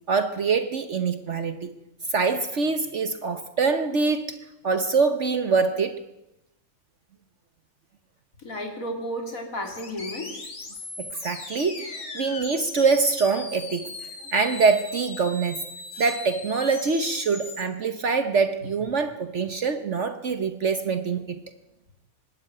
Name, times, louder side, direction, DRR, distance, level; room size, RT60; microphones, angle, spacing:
voice 1, 0.1-1.7 2.1-4.4 4.6-6.0 11.0-15.6 16.0-21.4, right 4 dB, 55° right, 9 dB, 1.3 m, -24 dB
voice 2, 8.4-10.5, equal, 70° left, 3 dB, 4.1 m, -33 dB
sound 1, 9.6-17.6, left 3 dB, 90° left, 2.9 m, -39 dB
24.0 x 12.5 x 9.1 m, 0.91 s
omnidirectional pair, 1.5 m